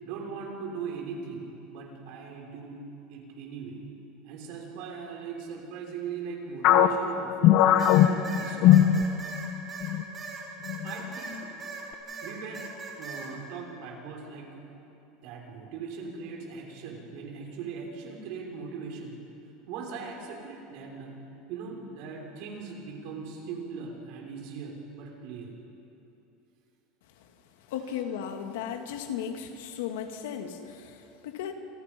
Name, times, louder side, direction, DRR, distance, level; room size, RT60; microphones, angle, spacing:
voice 1, 0.0-2.8 3.1-3.8 4.2-8.8 10.8-11.5 12.2-12.7 13.0-14.7 15.2-19.2 19.7-21.1 21.5-25.5, right 5 dB, 60° right, 0 dB, 5.9 m, -39 dB
sound 1, 6.6-9.5 9.8-10.0 10.7-11.1, left 11 dB, 50° left, 1.2 m, -20 dB
sound 2, 7.8-11.8 12.1-13.3, right 4 dB, 20° right, 5.5 m, -39 dB
voice 2, 27.7-31.5, left 8 dB, 90° left, 4 dB, 2.6 m, -35 dB
28.5 x 28.0 x 5.5 m, 2.9 s
supercardioid pair, 160°, 0 cm